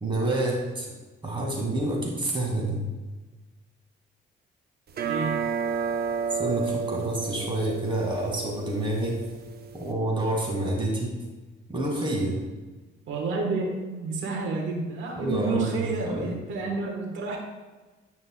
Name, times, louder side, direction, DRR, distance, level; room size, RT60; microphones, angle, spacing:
voice 1, 0.0-0.9 1.2-2.8 6.3-9.2 9.7-11.2 11.7-12.4 15.2-16.3, right 1 dB, 25° right, -1 dB, 2.0 m, -28 dB
sound 1, 4.9-9.9, right 6 dB, 55° right, 0.8 m, -31 dB
voice 2, 5.0-5.4 13.1-17.4, right 4 dB, 75° right, 0 dB, 1.3 m, -30 dB
9.8 x 5.4 x 2.3 m, 1.2 s
cardioid pair, 90°, 20 cm